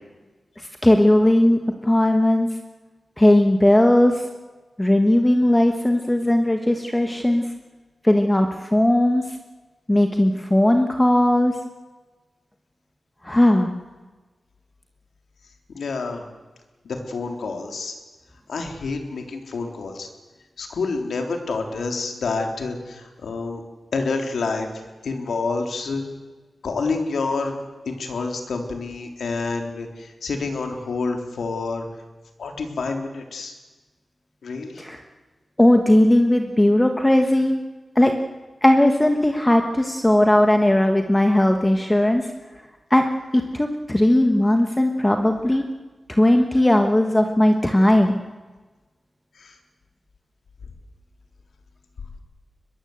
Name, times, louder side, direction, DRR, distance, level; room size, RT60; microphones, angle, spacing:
voice 1, 0.6-2.5 3.2-4.2 4.8-7.4 8.0-9.2 9.9-11.6 13.2-13.7 34.8-35.0 35.6-37.6 37.9-38.1 38.6-42.3 42.9-43.1 43.3-45.6 46.1-48.2, left 1 dB, 10° left, 5 dB, 1.3 m, -18 dB
voice 2, 15.7-16.2 16.8-18.0 18.5-20.1 20.6-23.6 23.9-24.7 25.0-26.0 26.6-27.6 27.8-31.9 32.4-33.5 34.4-34.8 49.4-49.6, left 4 dB, 90° left, 4 dB, 3.5 m, -28 dB
23.0 x 21.0 x 8.0 m, 1.3 s
wide cardioid pair, 150°, 0 cm